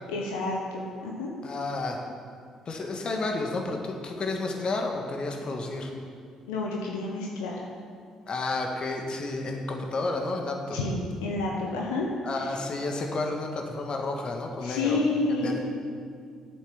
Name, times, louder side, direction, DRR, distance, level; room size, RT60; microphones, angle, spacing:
voice 1, 0.1-1.3 6.5-7.6 10.7-12.1 12.3-12.5 14.6-15.6, left 3 dB, 80° left, -1 dB, 1.2 m, -29 dB
voice 2, 1.4-2.0 2.7-5.9 8.3-10.8 12.2-15.0 15.4-15.6, left 2 dB, 45° left, 2 dB, 1.8 m, -31 dB
9.5 x 8.3 x 7.2 m, 2.2 s
hypercardioid pair, 50°, 2 cm